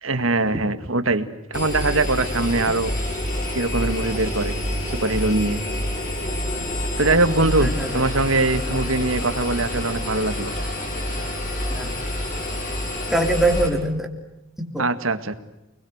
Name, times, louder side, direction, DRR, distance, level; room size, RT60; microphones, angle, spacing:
voice 1, 0.0-2.9 3.5-4.5 4.9-5.6 7.0-10.5 14.8-15.3, right 2 dB, 70° right, 11 dB, 2.0 m, -22 dB
Engine, 1.5-13.7, left 1 dB, 40° left, 6.9 m, -27 dB
voice 2, 7.3-8.1 11.7-12.0 13.1-14.1 14.6-14.8, right 1 dB, ahead, 2 dB, 3.4 m, -23 dB
29.0 x 22.0 x 8.1 m, 0.93 s
head